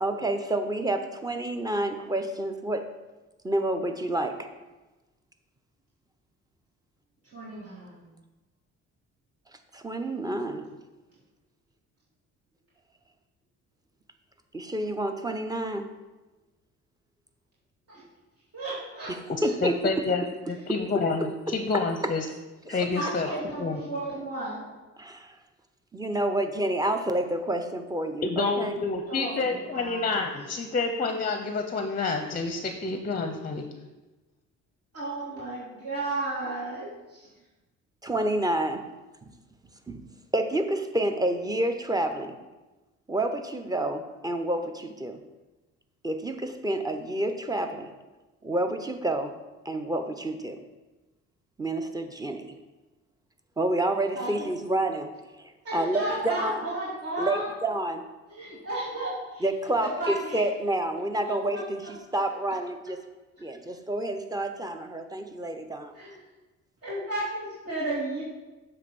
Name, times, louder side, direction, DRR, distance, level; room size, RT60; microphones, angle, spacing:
voice 1, 0.0-2.8 3.4-4.4 9.7-10.7 14.5-15.9 19.4-19.8 22.7-22.8 25.0-25.3 25.9-28.8 38.0-38.8 39.2-39.3 39.9-40.0 40.3-42.4 43.1-45.2 46.0-47.9 48.4-49.3 49.6-50.6 51.6-52.5 53.6-55.1 55.7-56.6 57.2-58.0 59.4-63.0 63.4-65.9, right 1 dB, 10° right, 6 dB, 0.7 m, -29 dB
voice 2, 7.3-8.0 17.9-18.0 18.5-19.1 19.4-19.5 22.9-24.7 29.1-29.4 29.7-30.1 34.9-37.3 54.1-54.5 55.6-57.5 58.3-59.4 59.8-60.4 61.2-61.6 65.9-66.2 66.8-68.2, right 1 dB, 55° right, -9 dB, 2.5 m, -33 dB
voice 3, 19.3-20.2 20.5-22.3 22.7-23.3 23.6-23.8 28.2-33.7, left 4 dB, 30° left, 5 dB, 0.6 m, -28 dB
7.2 x 3.3 x 6.0 m, 1.1 s
cardioid pair, 90°, 30 cm